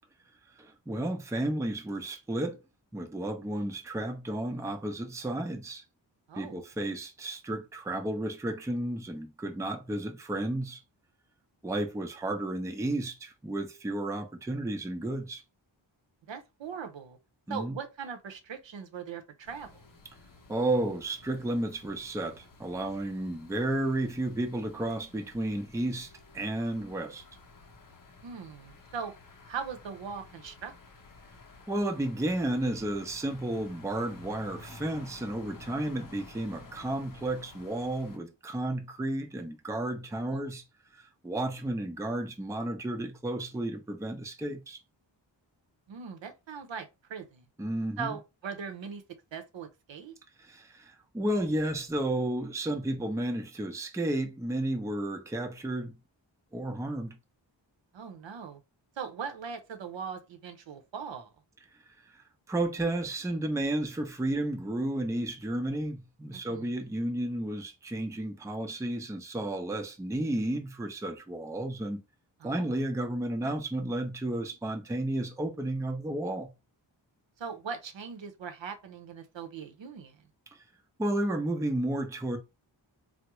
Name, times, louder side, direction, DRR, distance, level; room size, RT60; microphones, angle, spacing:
voice 1, 0.6-2.6 2.9-5.8 6.4-10.8 11.6-15.4 17.5-17.8 20.5-27.2 31.7-40.6 40.9-44.8 47.6-48.2 50.4-55.9 56.5-57.2 62.1-72.0 72.4-76.5 80.5-80.6 81.0-82.4, right 1 dB, 5° right, 0.4 m, -32 dB
voice 2, 6.3-6.6 16.3-17.2 17.5-19.8 28.2-29.1 29.5-30.7 40.1-40.5 45.9-47.4 48.0-49.0 49.3-50.2 57.9-58.6 59.0-61.3 66.3-66.7 72.4-72.8 77.4-80.3, right 6 dB, 75° right, 0.7 m, -40 dB
sound 1, 19.4-38.2, left 3 dB, 45° left, 0.7 m, -52 dB
3.5 x 2.0 x 2.9 m
wide cardioid pair, 70°, 46 cm